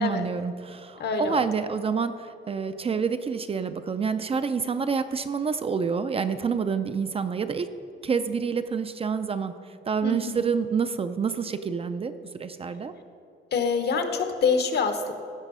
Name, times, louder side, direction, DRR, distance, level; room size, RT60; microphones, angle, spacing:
voice 1, 0.0-7.7 8.0-9.5 9.9-12.1 12.4-12.9, right 6 dB, 30° right, 10 dB, 0.4 m, -28 dB
voice 2, 1.0-1.4 10.0-10.4 13.5-15.1, left 5 dB, 60° left, 7 dB, 1.0 m, -26 dB
16.0 x 6.5 x 5.5 m, 2.6 s
wide cardioid pair, 165°, 19 cm